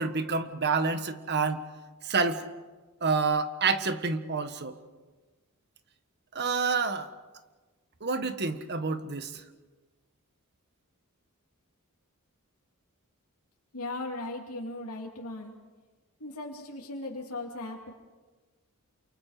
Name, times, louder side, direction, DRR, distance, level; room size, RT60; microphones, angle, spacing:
voice 1, 0.0-1.6 2.0-2.4 3.0-4.7 6.3-7.1 8.0-9.4, right 4 dB, 50° right, 10 dB, 1.5 m, -28 dB
voice 2, 13.7-15.5 16.2-17.9, left 2 dB, 85° left, -1 dB, 2.8 m, -37 dB
28.5 x 28.0 x 5.1 m, 1.3 s
head